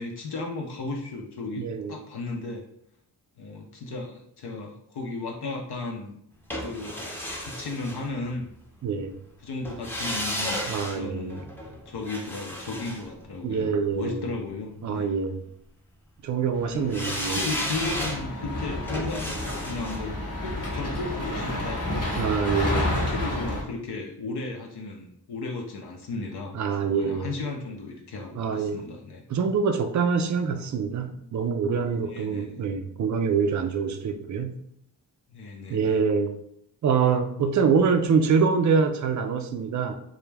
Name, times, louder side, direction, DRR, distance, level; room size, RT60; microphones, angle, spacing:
voice 1, 0.0-2.7 3.4-6.2 6.6-7.0 7.4-8.5 9.4-15.1 16.7-22.2 22.8-29.2 32.1-32.6 35.3-35.9, left 3 dB, 55° left, 1 dB, 0.6 m, -35 dB
voice 2, 1.6-1.9 8.8-9.1 10.7-11.4 13.4-14.3 14.8-15.4 16.2-17.4 22.1-22.9 26.5-27.3 28.3-28.8 29.3-34.6 35.7-36.3 36.8-39.9, right 5 dB, 40° right, 7 dB, 0.4 m, -25 dB
sound 1, 6.5-8.6 9.7-13.9 16.9-21.9 22.2-22.3, equal, 5° left, 0.6 m, -34 dB
sound 2, 16.6-23.6, left 1 dB, 30° left, 0.9 m, -30 dB
2.3 x 2.1 x 3.2 m, 0.74 s
cardioid pair, 40°, 46 cm